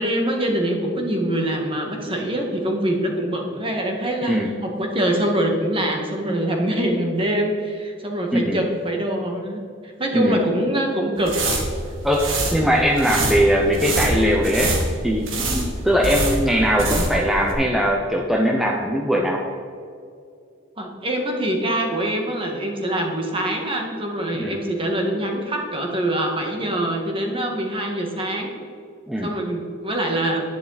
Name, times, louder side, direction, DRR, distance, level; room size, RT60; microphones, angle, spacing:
voice 1, 0.0-9.6 10.0-11.3 20.8-28.5 29.2-30.4, right 1 dB, 30° right, 1 dB, 1.7 m, -24 dB
voice 2, 4.2-4.5 8.3-8.6 10.1-10.4 12.0-14.8 15.0-19.4 24.3-24.6 29.1-29.3, equal, ahead, -1 dB, 0.8 m, -20 dB
sound 1, 11.2-17.2 17.5-17.6, right 2 dB, 90° right, 2.2 m, -25 dB
10.5 x 10.5 x 4.1 m, 2.4 s
head